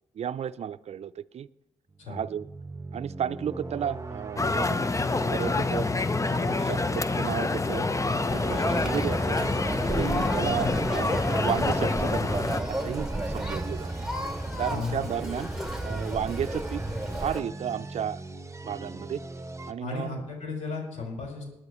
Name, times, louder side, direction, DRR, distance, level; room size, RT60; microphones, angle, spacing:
voice 1, 0.2-1.5 2.1-2.5 2.9-4.7 5.1-5.9 6.3-7.9 8.3-9.4 9.9-10.7 10.9-11.1 11.4-13.9 14.6-15.5 15.8-16.8 17.2-18.2 18.6-19.2 19.7-20.1, right 9 dB, 60° right, 15 dB, 0.5 m, -33 dB
sound 1, 1.9-19.7, right 3 dB, 25° right, 1.0 m, -42 dB
sound 2, 4.4-12.6, left 3 dB, 25° left, 0.8 m, -27 dB
Conversation, 8.3-17.4, right 1 dB, 5° right, 2.7 m, -32 dB
voice 2, 10.4-10.8 14.7-15.2 19.8-21.5, left 4 dB, 75° left, 0 dB, 5.0 m, -35 dB
21.0 x 10.0 x 3.1 m, 0.94 s
supercardioid pair, 45°, 12 cm